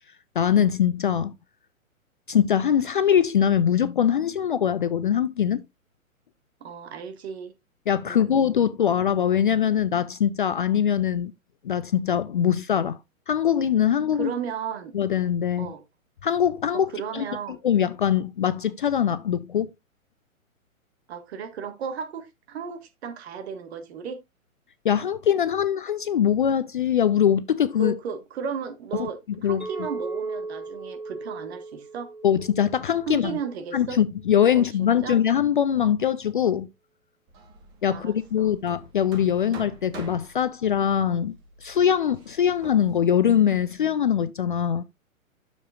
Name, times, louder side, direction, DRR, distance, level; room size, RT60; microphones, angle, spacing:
voice 1, 0.4-1.3 2.3-5.6 7.9-11.3 11.6-13.0 13.3-14.3 14.9-15.7 16.2-16.9 17.1-17.3 17.6-19.7 24.8-27.9 29.4-29.6 32.2-33.3 33.7-36.7 37.8-41.3 41.6-44.8, left 9 dB, 40° left, 0.4 m, -22 dB
voice 2, 6.6-7.5 8.0-8.4 14.1-14.9 15.6-15.8 16.7-17.6 21.1-24.2 27.8-32.1 33.1-34.0 34.5-35.2 37.9-38.5, right 6 dB, 50° right, 1.6 m, -35 dB
Chink clink, 29.6-33.9, right 3 dB, ahead, 2.1 m, -37 dB
Hammer, 37.3-44.2, right 2 dB, 25° right, 1.5 m, -46 dB
10.0 x 7.1 x 2.5 m
figure-of-eight pair, 120°, 42 cm